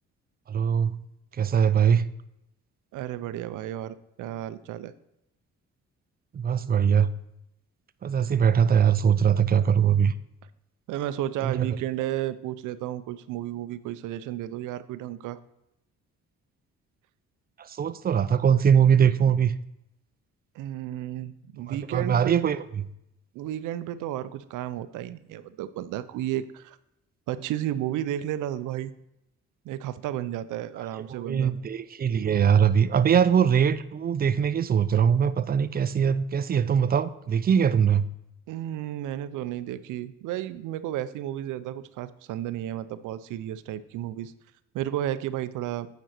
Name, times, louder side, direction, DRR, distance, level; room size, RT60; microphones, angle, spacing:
voice 1, 0.5-1.0 1.3-2.1 6.3-7.1 8.0-10.1 11.4-11.7 17.6-19.5 21.7-22.9 30.8-38.1, right 7 dB, 30° right, 14 dB, 0.4 m, -22 dB
voice 2, 2.9-4.9 10.9-15.4 20.5-22.6 23.3-26.8 27.3-28.9 29.6-31.5 38.5-44.3 44.7-45.9, right 12 dB, 85° right, 14 dB, 0.5 m, -33 dB
9.1 x 5.2 x 4.4 m, 0.83 s
cardioid pair, 90°, 30 cm